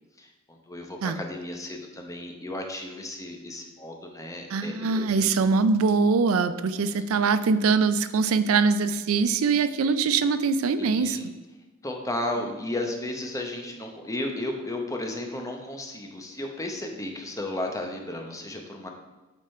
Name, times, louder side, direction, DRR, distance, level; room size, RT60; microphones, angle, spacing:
voice 1, 0.2-5.3 6.9-7.1 10.7-11.3 11.8-18.9, left 1 dB, 15° left, 2 dB, 0.8 m, -34 dB
voice 2, 4.5-11.2, right 4 dB, 70° right, 12 dB, 0.4 m, -23 dB
8.8 x 3.7 x 4.3 m, 1.1 s
head